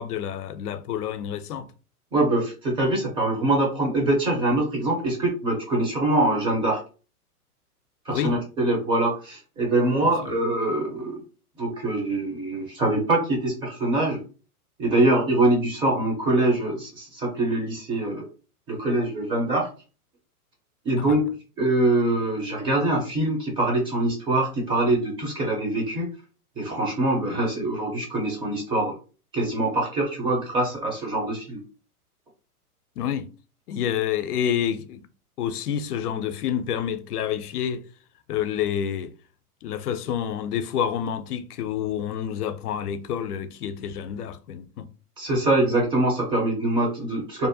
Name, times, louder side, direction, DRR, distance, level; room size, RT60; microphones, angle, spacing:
voice 1, 0.0-1.7 8.1-8.4 33.0-33.3 33.7-35.1 35.4-37.8 38.3-39.1 39.6-44.9, left 9 dB, 80° left, 0.5 m, -28 dB
voice 2, 2.1-6.8 8.1-11.2 11.6-14.2 14.8-18.2 18.7-19.7 20.8-21.3 21.6-26.1 26.6-28.9 29.3-31.6 45.2-47.5, right 2 dB, 10° right, 0.5 m, -24 dB
2.6 x 2.1 x 2.6 m
hypercardioid pair, 120°, 46 cm